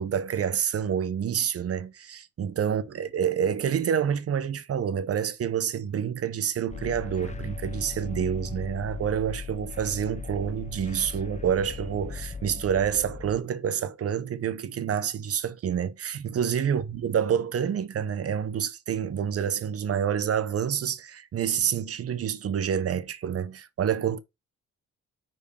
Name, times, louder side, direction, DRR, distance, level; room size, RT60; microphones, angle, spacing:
voice 1, 0.0-24.2, right 8 dB, 50° right, 0.9 m, -28 dB
sound 1, 6.7-13.4, left 5 dB, 25° left, 0.7 m, -38 dB
5.3 x 4.7 x 6.4 m
cardioid pair, 90°, 30 cm